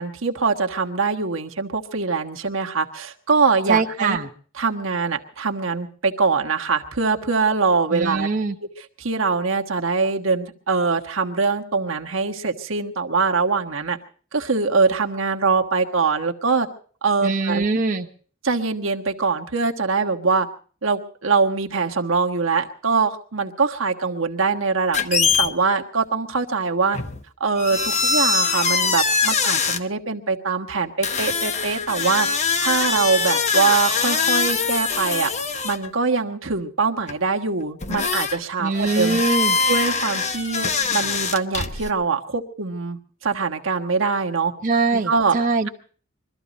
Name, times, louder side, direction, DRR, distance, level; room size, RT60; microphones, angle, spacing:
voice 1, 0.0-4.2 4.6-8.3 8.8-14.0 14.3-16.7 17.0-17.7 18.4-20.5 20.8-27.0 27.4-32.3 32.6-35.3 35.6-39.2 39.7-44.5 44.9-45.4, right 4 dB, 70° right, 3 dB, 1.4 m, -23 dB
voice 2, 3.7-4.3 7.9-8.5 17.2-18.1 38.6-39.6 44.6-45.7, right 3 dB, 40° right, 0 dB, 1.0 m, -22 dB
sound 1, 24.9-25.5 26.9-27.2 27.6-29.8 31.0-35.9 37.1-37.2 37.8-38.4 38.7-41.9, left 5 dB, 35° left, 0.9 m, -23 dB
23.0 x 13.5 x 4.1 m, 0.43 s
head